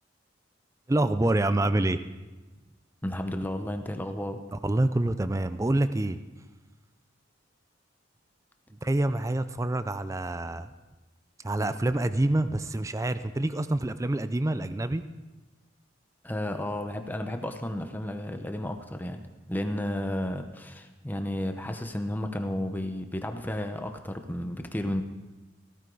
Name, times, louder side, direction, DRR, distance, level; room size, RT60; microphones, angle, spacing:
voice 1, 0.9-2.0 4.5-6.2 8.8-10.7 11.4-15.0, right 1 dB, 15° right, 12 dB, 0.4 m, -26 dB
voice 2, 3.0-4.4 16.2-19.2 19.5-25.0, left 1 dB, 10° left, 6 dB, 0.8 m, -32 dB
16.0 x 14.0 x 3.9 m, 1.1 s
head